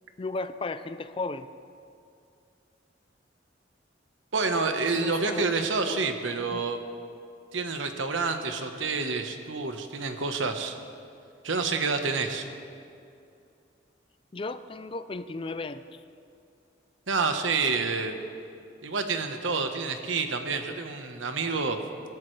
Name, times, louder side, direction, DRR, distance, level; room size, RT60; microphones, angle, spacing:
voice 1, 0.2-1.5 5.0-5.5 5.9-6.1 6.5-6.6 14.3-16.0, left 3 dB, 30° left, 12 dB, 0.4 m, -35 dB
voice 2, 4.3-6.8 7.5-10.7 11.4-12.4 17.1-18.2 18.8-21.8, right 4 dB, 85° right, 6 dB, 1.2 m, -28 dB
24.5 x 12.5 x 3.3 m, 2.5 s
head